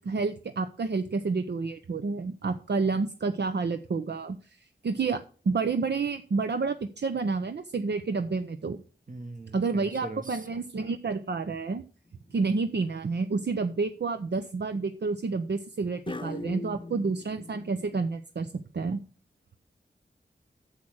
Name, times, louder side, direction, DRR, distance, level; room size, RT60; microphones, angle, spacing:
voice 1, 0.0-8.8 9.5-11.8 12.3-19.0, right 4 dB, 65° right, 9 dB, 0.7 m, -29 dB
voice 2, 9.1-10.5, right 2 dB, 45° right, 8 dB, 1.4 m, -41 dB
sound 1, 12.2-12.6 13.3-13.8 16.1-18.0, left 2 dB, 25° left, 0.7 m, -41 dB
8.3 x 7.4 x 6.4 m, 0.40 s
wide cardioid pair, 75°, 19 cm